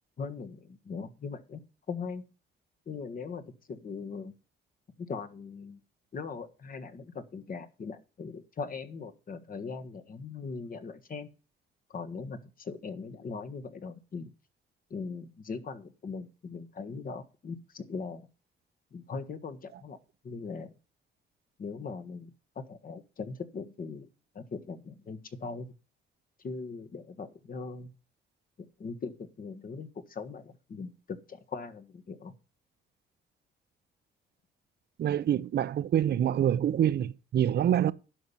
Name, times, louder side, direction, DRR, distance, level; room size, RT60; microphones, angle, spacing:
voice 1, 0.2-1.6 1.9-2.3 2.8-4.3 5.0-5.8 6.1-11.3 11.9-14.3 14.9-18.3 18.9-20.0 20.2-20.7 21.6-24.1 24.3-25.7 26.4-27.9 28.8-32.3, left 4 dB, 45° left, 1.5 m, -40 dB
voice 2, 35.0-37.9, right 10 dB, 55° right, 0.6 m, -26 dB
11.0 x 5.5 x 7.2 m
cardioid pair, 90°, 20 cm